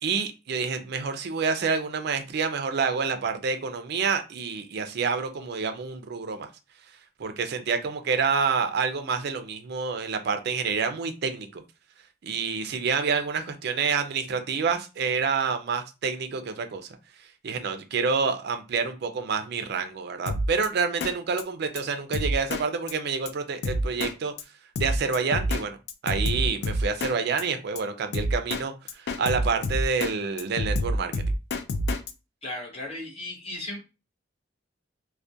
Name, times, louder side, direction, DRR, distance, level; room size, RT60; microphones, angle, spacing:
voice 1, 0.0-6.5 7.2-11.6 12.2-16.9 17.4-24.3 24.8-25.8 26.0-31.2, right 5 dB, 55° right, 0.4 m, -28 dB
Drum kit, 20.3-20.7 21.0-21.1 21.4-21.5 21.8-21.9 22.1-22.6 22.9-23.0 23.3-23.4 23.6-24.1 24.4-24.5 24.8-25.6 25.9-27.1 27.4-27.5 27.8-27.9 28.1-28.6 28.9-30.1 30.4-32.1, left 1 dB, 60° left, 0.3 m, -27 dB
voice 2, 32.4-33.8, left 1 dB, 30° left, 0.7 m, -36 dB
2.3 x 2.1 x 2.6 m
head